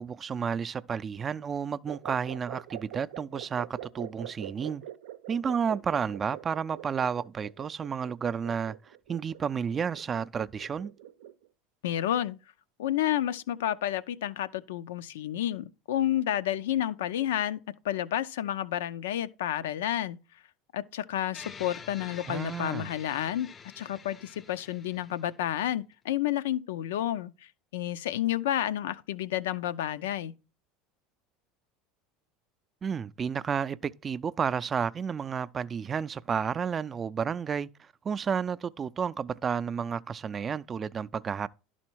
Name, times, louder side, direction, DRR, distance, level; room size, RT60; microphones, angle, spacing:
voice 1, 0.0-4.8 5.3-8.8 9.1-10.9 22.3-22.9 32.8-37.7 38.0-41.5, right 7 dB, 30° right, 0.4 m, -31 dB
sound 1, 1.9-11.5, right 12 dB, 80° right, 0.6 m, -44 dB
voice 2, 11.8-12.4 12.8-20.2 20.7-23.5 23.8-30.3, left 12 dB, 80° left, 0.5 m, -30 dB
sound 2, 21.3-25.7, left 6 dB, 30° left, 0.5 m, -47 dB
11.0 x 4.2 x 4.5 m
hypercardioid pair, 90°, 0 cm